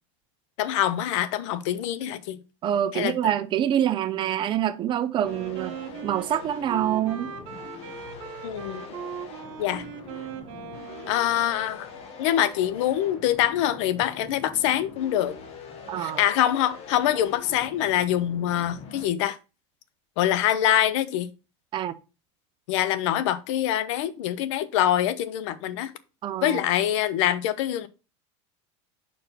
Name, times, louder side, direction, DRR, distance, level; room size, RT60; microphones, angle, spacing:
voice 1, 0.6-2.4 2.9-3.1 8.4-8.8 9.6-9.8 11.1-11.9 12.2-15.4 16.0-19.4 20.2-21.3 22.7-25.9 26.4-27.9, left 11 dB, 70° left, 0.7 m, -24 dB
voice 2, 2.6-5.8 6.0-7.3 15.9-16.2 21.7-21.9 26.2-26.6, right 10 dB, 30° right, 0.5 m, -26 dB
Wind instrument woodwind instrument, 5.1-11.9, right 7 dB, 70° right, 1.7 m, -39 dB
sound 1, 5.2-19.1, left 5 dB, 40° left, 1.4 m, -43 dB
5.2 x 4.6 x 5.6 m
supercardioid pair, 140°, 16 cm